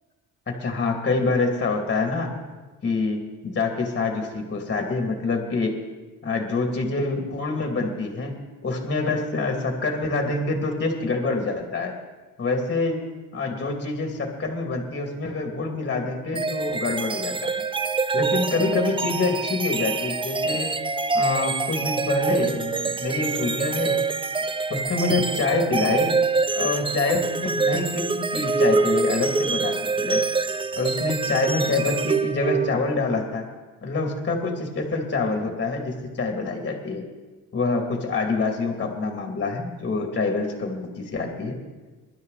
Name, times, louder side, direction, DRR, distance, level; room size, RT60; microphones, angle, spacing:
voice 1, 0.5-2.3 2.8-5.8 6.2-8.4 8.6-11.9 12.4-13.0 13.3-17.6 18.1-20.7 21.1-24.0 24.7-26.2 26.6-30.2 30.7-33.5 33.8-37.0 37.5-41.6, left 3 dB, 30° left, 3 dB, 2.6 m, -26 dB
sound 1, 16.4-33.0, right 4 dB, 15° right, 0.5 m, -25 dB
24.0 x 12.0 x 4.1 m, 1.3 s
cardioid pair, 130°, 35 cm